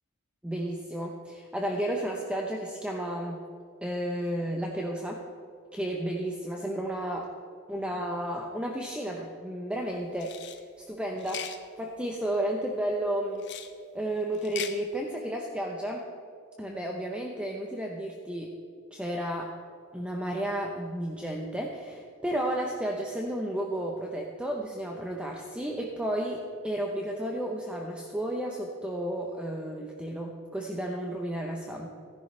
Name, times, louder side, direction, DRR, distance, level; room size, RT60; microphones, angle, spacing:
voice 1, 0.4-3.4 3.8-5.2 5.7-7.3 7.7-10.4 10.8-11.5 11.8-13.4 13.9-16.1 16.6-18.6 18.9-19.5 19.9-31.9, right 1 dB, 5° right, 0 dB, 0.8 m, -32 dB
sound 1, 10.2-10.6 11.2-11.6 13.4-13.7 14.3-14.8, left 9 dB, 55° left, 0.8 m, -38 dB
16.5 x 11.0 x 3.3 m, 2.4 s
head